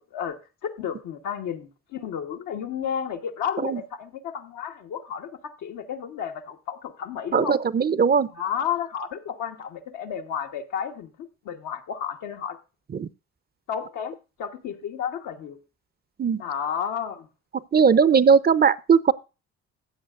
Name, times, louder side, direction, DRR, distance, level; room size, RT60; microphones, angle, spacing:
voice 1, 0.0-7.6 8.3-12.6 13.7-15.6 16.4-17.3, left 8 dB, 80° left, 1.3 m, -32 dB
voice 2, 7.3-8.3 12.9-13.1 16.2-16.4 17.7-19.1, right 6 dB, 35° right, 0.6 m, -19 dB
14.5 x 8.4 x 2.5 m
supercardioid pair, 55°, 30 cm